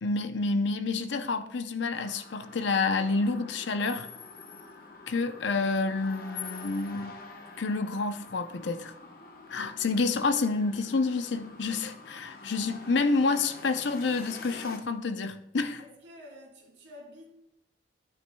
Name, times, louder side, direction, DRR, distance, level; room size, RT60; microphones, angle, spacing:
voice 1, 0.0-4.1 5.1-7.2 7.6-8.9 9.5-15.8, left 3 dB, 75° left, 0.7 m, -29 dB
sound 1, 1.9-14.8, left 4 dB, 50° left, 1.0 m, -46 dB
voice 2, 15.8-17.3, left 1 dB, 75° right, 3.3 m, -49 dB
12.5 x 9.5 x 2.3 m
head